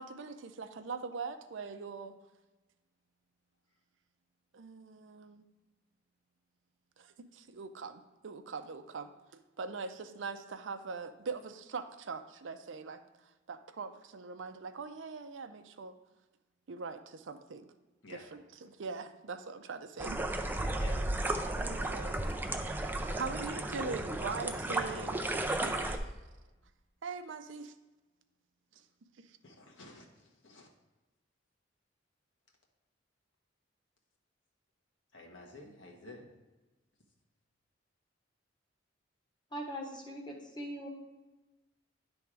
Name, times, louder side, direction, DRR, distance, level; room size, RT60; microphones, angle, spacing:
voice 1, 0.0-2.1 4.5-5.4 7.0-9.1 9.6-13.0 13.5-15.9 16.7-17.7 18.1-20.4 21.6-22.2 23.1-25.2 25.6-26.0 27.0-27.7, right 4 dB, 80° right, 9 dB, 0.5 m, -42 dB
sound 1, 20.0-26.0, right 1 dB, 10° right, 0.4 m, -34 dB
voice 2, 29.4-30.7 35.1-36.3, left 2 dB, 85° left, 0 dB, 1.4 m, -51 dB
voice 3, 39.5-40.9, equal, 25° left, 1 dB, 1.1 m, -41 dB
10.0 x 3.5 x 4.7 m, 1.1 s
head